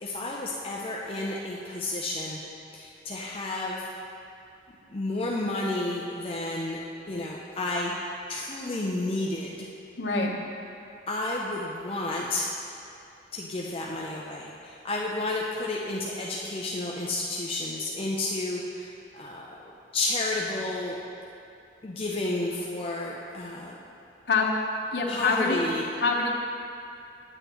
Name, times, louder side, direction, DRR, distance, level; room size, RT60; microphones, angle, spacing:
voice 1, 0.0-2.4 2.7-3.9 4.9-6.8 7.1-7.9 8.3-9.7 11.1-12.5 13.3-21.0 21.8-23.8 25.1-25.8, left 2 dB, 30° left, -3 dB, 0.5 m, -31 dB
voice 2, 10.0-10.3 24.3-24.5 24.9-25.6 26.0-26.3, left 4 dB, 70° left, -2 dB, 1.0 m, -25 dB
9.0 x 8.8 x 3.0 m, 2.6 s
head